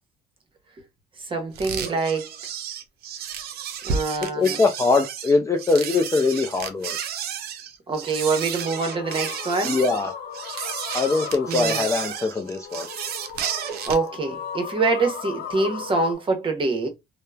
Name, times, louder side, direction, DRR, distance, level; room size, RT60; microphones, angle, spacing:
voice 1, 1.3-2.3 3.8-4.6 7.9-9.8 11.5-11.8 13.8-16.9, right 3 dB, 30° right, 0.9 m, -25 dB
sound 1, 1.6-14.1, right 7 dB, 65° right, 0.5 m, -32 dB
voice 2, 4.4-7.0 9.6-10.1 10.9-12.9, left 3 dB, 20° left, 0.4 m, -22 dB
sound 2, 8.6-16.1, left 8 dB, 70° left, 0.5 m, -37 dB
2.9 x 2.1 x 2.3 m
cardioid pair, 110°, 17 cm